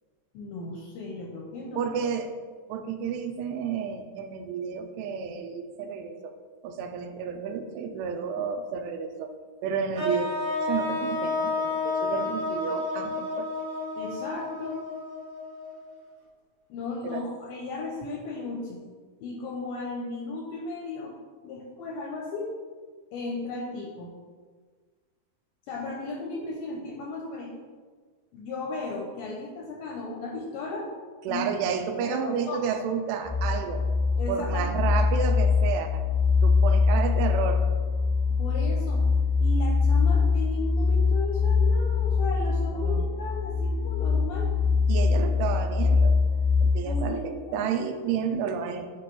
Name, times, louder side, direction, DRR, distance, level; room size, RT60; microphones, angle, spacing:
voice 1, 0.3-1.9 14.0-14.8 16.7-18.8 19.2-21.1 21.4-22.5 23.1-24.1 25.7-27.5 28.3-30.9 31.3-31.4 32.0-32.7 34.2-34.7 38.4-39.0 39.4-44.5 46.8-47.2 47.5-47.7, left 3 dB, 80° left, -2 dB, 2.2 m, -35 dB
voice 2, 1.8-2.3 2.7-6.3 6.6-9.3 9.6-10.3 10.6-13.5 17.0-17.2 31.3-33.8 34.3-36.0 36.4-37.7 42.7-43.0 44.9-46.2 46.6-48.9, right 6 dB, 90° right, 6 dB, 2.7 m, -31 dB
sound 1, 10.0-16.0, left 2 dB, 45° right, 2.1 m, -31 dB
sound 2, 33.2-47.0, left 4 dB, 70° right, 2.5 m, -23 dB
7.0 x 3.0 x 4.5 m, 1.5 s
omnidirectional pair, 4.8 m